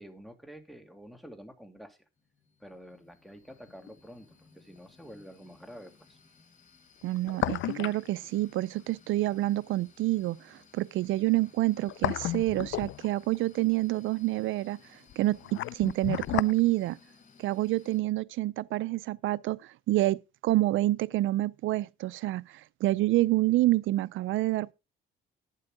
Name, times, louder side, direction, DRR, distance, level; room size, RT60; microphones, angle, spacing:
voice 1, 0.0-2.0 2.6-6.2, equal, ahead, 2.4 m, -49 dB
sound 1, 2.2-18.0, left 4 dB, 40° left, 3.9 m, -59 dB
sound 2, 3.9-4.0 7.0-8.1 8.3-8.4 11.6-13.4 15.1-16.6 16.9-17.0, left 14 dB, 75° left, 0.5 m, -32 dB
voice 2, 7.0-17.0 17.4-24.7, right 17 dB, 80° right, 0.4 m, -28 dB
11.5 x 9.8 x 3.7 m
cardioid pair, 90°, 20 cm